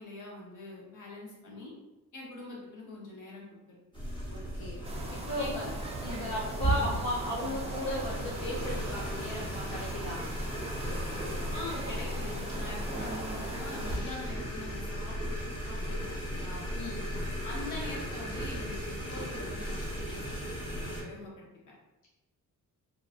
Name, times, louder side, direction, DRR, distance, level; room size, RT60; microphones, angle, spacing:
voice 1, 0.0-1.7 2.1-3.8 5.4-5.7 6.0-6.3 6.7-7.0 11.5-15.4 15.6-16.7 17.4-21.5, left 2 dB, 55° left, -4 dB, 1.1 m, -44 dB
sound 1, 3.9-21.0, equal, 15° left, 0.9 m, -37 dB
voice 2, 4.3-5.7 6.1-10.2 16.8-17.0, left 1 dB, 80° left, -4 dB, 0.6 m, -36 dB
sound 2, 4.8-14.0, right 2 dB, 15° right, 0.5 m, -38 dB
2.8 x 2.5 x 2.5 m, 1.0 s
cardioid pair, 95°, 36 cm